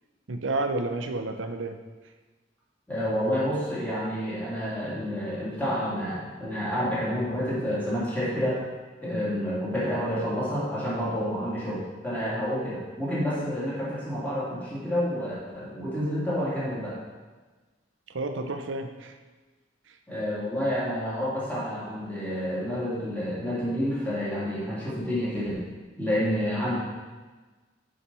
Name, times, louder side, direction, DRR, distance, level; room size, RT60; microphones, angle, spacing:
voice 1, 0.3-1.8 18.1-19.1 19.9-20.0, right 2 dB, 90° right, 6 dB, 0.7 m, -30 dB
voice 2, 2.9-8.6 9.0-17.0 20.1-25.6 26.0-26.8, equal, 10° left, -8 dB, 2.7 m, -29 dB
7.2 x 5.0 x 5.5 m, 1.3 s
head